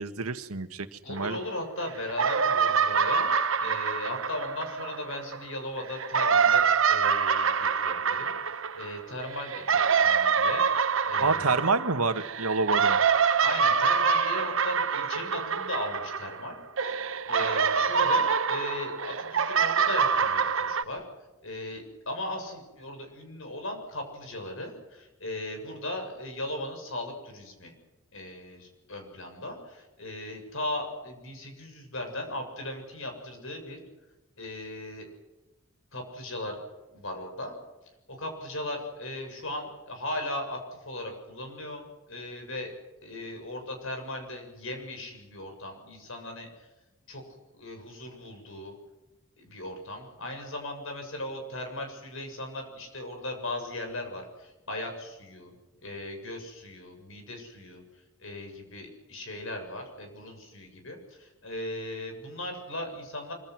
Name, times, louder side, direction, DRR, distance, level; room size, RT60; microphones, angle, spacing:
voice 1, 0.0-1.4 11.2-13.0, right 3 dB, 85° right, 9 dB, 1.8 m, -28 dB
voice 2, 1.0-10.7 11.1-11.6 13.4-16.6 16.8-17.0 17.2-21.1 21.4-27.7 28.1-33.8 34.4-35.1 35.9-36.6 36.9-37.5 38.1-40.6 40.8-42.7 43.0-46.7 47.1-47.2 47.5-48.7 49.4-55.6 55.8-57.8 58.2-63.3, left 1 dB, 65° left, 4 dB, 7.1 m, -37 dB
sound 1, 1.2-1.8 2.1-5.4 5.9-16.5 16.8-20.8, right 6 dB, 65° right, 1.1 m, -26 dB
25.5 x 24.5 x 6.2 m, 1.1 s
head